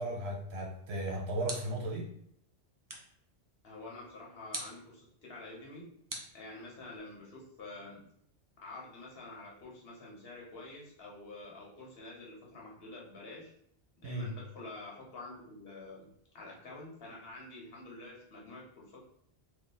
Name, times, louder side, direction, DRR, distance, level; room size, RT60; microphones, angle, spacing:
voice 1, 0.0-2.1 14.0-14.3, right 1 dB, 70° right, -2 dB, 1.1 m, -36 dB
sound 1, 1.4-2.0 2.9-3.2 4.5-4.9 6.1-7.0, right 1 dB, 30° right, 0.4 m, -43 dB
voice 2, 3.6-6.0 6.3-8.0 8.6-13.5 14.0-16.1 16.3-19.0, left 2 dB, 65° left, -3 dB, 1.2 m, -48 dB
2.7 x 2.6 x 3.8 m, 0.68 s
omnidirectional pair, 1.1 m